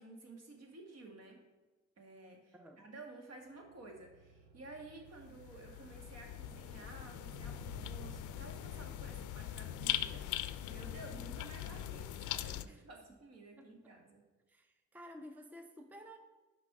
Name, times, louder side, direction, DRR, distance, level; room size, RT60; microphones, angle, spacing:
voice 1, 0.0-1.4 2.0-14.3, right 2 dB, 55° right, 2 dB, 1.8 m, -53 dB
sound 1, 3.4-10.8, right 4 dB, 80° right, 1.1 m, -59 dB
sound 2, 5.1-12.7, left 12 dB, 75° left, 0.4 m, -41 dB
voice 2, 13.6-13.9 14.5-16.2, equal, 5° right, 6 dB, 0.6 m, -53 dB
6.0 x 5.4 x 5.9 m, 1.3 s
cardioid pair, 90°, 30 cm